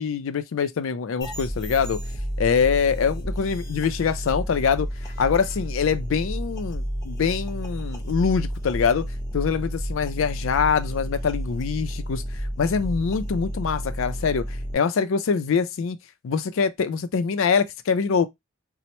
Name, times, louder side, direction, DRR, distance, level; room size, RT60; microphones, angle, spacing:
voice 1, 0.0-2.0 2.4-4.9 5.2-9.1 9.3-12.2 12.6-14.4 14.7-16.0 16.2-18.3, left 6 dB, 65° left, 0.4 m, -24 dB
sound 1, 1.2-14.7, equal, 15° left, 1.0 m, -31 dB
4.2 x 2.0 x 2.9 m
head